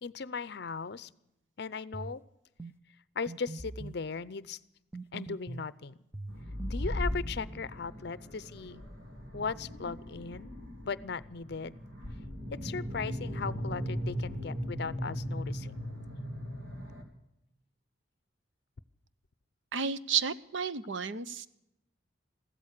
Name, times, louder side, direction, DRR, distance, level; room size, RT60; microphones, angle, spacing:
voice 1, 0.0-1.1 1.6-2.2 3.2-4.6 5.1-5.9 6.7-8.8 9.3-10.5 10.9-11.8 12.5-15.7, left 5 dB, 55° left, 18 dB, 0.6 m, -38 dB
sound 1, 1.9-2.2 2.6-2.8 3.3-4.0 4.9-5.7 6.1-7.1, right 2 dB, 10° right, 0.4 m, -42 dB
sound 2, 6.3-17.0, equal, 90° right, 3.1 m, -38 dB
voice 2, 19.7-21.5, right 6 dB, 70° right, 14 dB, 0.7 m, -32 dB
15.5 x 13.0 x 6.6 m, 0.85 s
head